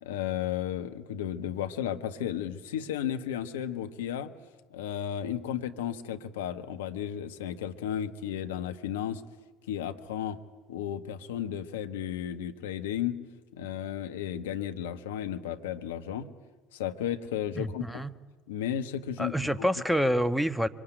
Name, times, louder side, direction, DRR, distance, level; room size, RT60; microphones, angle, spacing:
voice 1, 0.0-4.3 4.7-9.2 9.7-10.4 10.7-13.2 13.5-16.3 16.7-18.0 18.5-19.4, left 10 dB, 85° left, 9 dB, 1.4 m, -33 dB
voice 2, 17.5-18.1 19.2-20.7, equal, ahead, 13 dB, 1.3 m, -27 dB
25.5 x 24.5 x 9.2 m, 1.3 s
hypercardioid pair, 65°, 0 cm